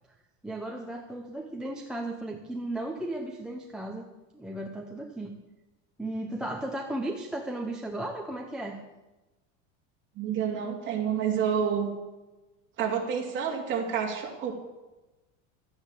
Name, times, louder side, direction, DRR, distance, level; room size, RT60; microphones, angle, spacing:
voice 1, 0.4-4.1 4.3-5.4 6.0-8.8, right 1 dB, ahead, 1 dB, 0.6 m, -35 dB
voice 2, 10.2-11.9 12.8-14.5, right 7 dB, 30° right, 0 dB, 2.8 m, -29 dB
13.0 x 9.5 x 7.5 m, 1.1 s
cardioid pair, 170°, 37 cm